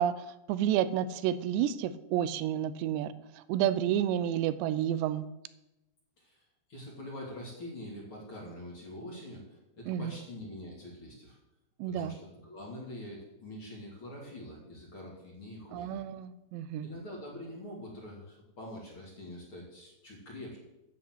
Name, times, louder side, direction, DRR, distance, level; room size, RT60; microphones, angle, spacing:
voice 1, 0.0-3.1 3.5-5.3 9.9-10.1 11.8-12.1 15.7-16.9, right 10 dB, 85° right, 14 dB, 2.9 m, -30 dB
voice 2, 6.7-11.4 11.8-16.0 16.8-20.6, left 1 dB, 35° left, -2 dB, 2.9 m, -45 dB
9.9 x 8.4 x 7.9 m, 0.93 s
omnidirectional pair, 4.9 m